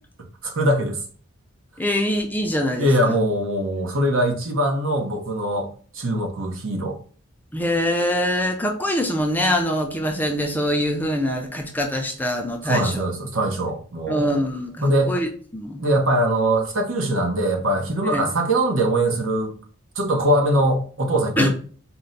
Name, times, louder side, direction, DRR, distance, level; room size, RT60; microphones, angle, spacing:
voice 1, 0.4-1.0 2.8-5.7 5.9-7.0 12.6-14.3 14.8-15.1 15.8-19.5 20.0-21.5, right 1 dB, 70° right, 0.8 m, -22 dB
voice 2, 1.8-3.2 7.5-13.1 14.1-15.8 18.1-18.3 21.4-21.5, left 1 dB, 10° left, 0.5 m, -24 dB
4.3 x 2.2 x 3.9 m
head